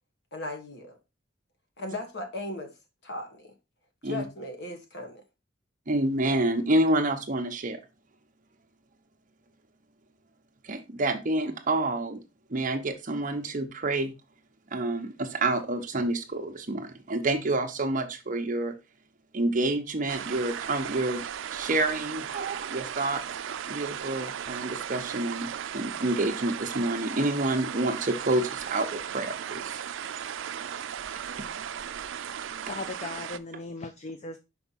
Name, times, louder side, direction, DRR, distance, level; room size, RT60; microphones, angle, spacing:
voice 1, 0.3-1.0 1.8-2.7 3.0-3.5 4.0-5.2, left 2 dB, 60° left, 1.4 m, -37 dB
voice 2, 5.9-7.8 10.6-12.2 12.5-14.1 14.7-18.7 19.3-23.2 23.7-29.8 31.1-31.2, right 2 dB, 40° right, 0.8 m, -28 dB
sound 1, 20.1-33.4, right 8 dB, 75° right, 0.4 m, -36 dB
voice 3, 32.7-34.4, left 3 dB, 35° left, 0.4 m, -38 dB
5.8 x 4.4 x 4.1 m
head